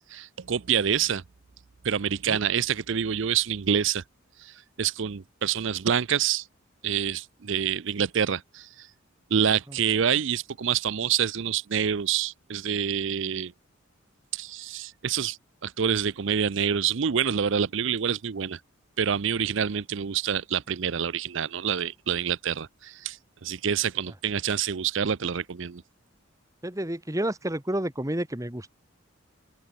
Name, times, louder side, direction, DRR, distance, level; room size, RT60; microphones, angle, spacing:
voice 1, 0.1-1.2 1.8-4.0 4.4-6.5 6.8-8.9 9.3-13.5 14.3-15.4 15.6-18.6 19.0-25.8, right 8 dB, 60° right, 0.5 m, -27 dB
voice 2, 26.6-28.7, right 1 dB, 15° right, 1.7 m, -30 dB
open air
head